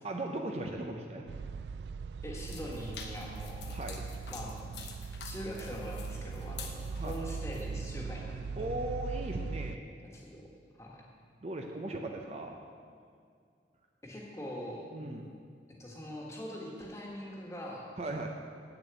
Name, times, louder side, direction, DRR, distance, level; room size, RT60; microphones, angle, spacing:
voice 1, 0.0-1.3 3.7-4.1 6.9-7.2 8.6-9.9 11.4-12.6 14.9-15.3 18.0-18.3, right 1 dB, 35° right, 2 dB, 0.7 m, -38 dB
sound 1, 1.3-9.8, right 5 dB, 65° right, 0.3 m, -40 dB
voice 2, 2.2-3.8 4.3-4.7 5.2-8.7 10.1-10.4 10.8-11.0 14.0-14.8 15.8-17.9, equal, 15° left, -3 dB, 1.6 m, -42 dB
sound 2, 2.4-7.6, left 6 dB, 65° left, 1.1 m, -48 dB
8.4 x 7.0 x 8.1 m, 2.2 s
head